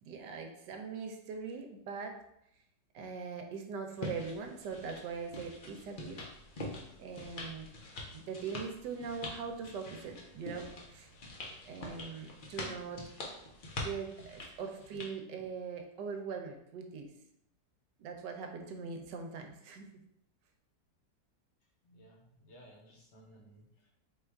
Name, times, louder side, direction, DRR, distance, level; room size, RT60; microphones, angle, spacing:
voice 1, 0.0-2.2 2.9-6.2 7.0-7.7 8.1-11.1 11.6-13.0 13.8-17.1 18.0-19.9, right 5 dB, 80° right, 4 dB, 1.2 m, -41 dB
sound 1, 4.0-15.1, left 2 dB, 70° left, 0.4 m, -45 dB
voice 2, 21.8-23.9, right 1 dB, 50° left, 0 dB, 0.9 m, -58 dB
3.8 x 2.4 x 4.4 m, 0.75 s
omnidirectional pair, 1.9 m